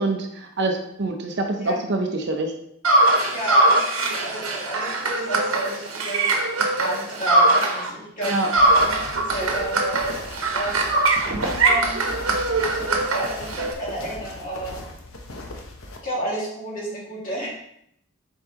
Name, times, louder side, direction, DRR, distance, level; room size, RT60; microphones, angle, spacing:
voice 1, 0.0-2.5 8.2-8.5, right 2 dB, 55° right, 4 dB, 0.8 m, -25 dB
sound 1, 2.8-7.9 8.2-13.7, right 2 dB, 90° right, 1.0 m, -21 dB
voice 2, 3.2-6.4 6.8-10.0 10.5-11.0 11.4-12.0 12.5-14.8 16.0-17.5, right 1 dB, 40° left, -5 dB, 2.3 m, -32 dB
sound 2, 8.6-16.0, left 1 dB, 85° left, 1.0 m, -38 dB
7.1 x 4.6 x 3.0 m, 0.73 s
head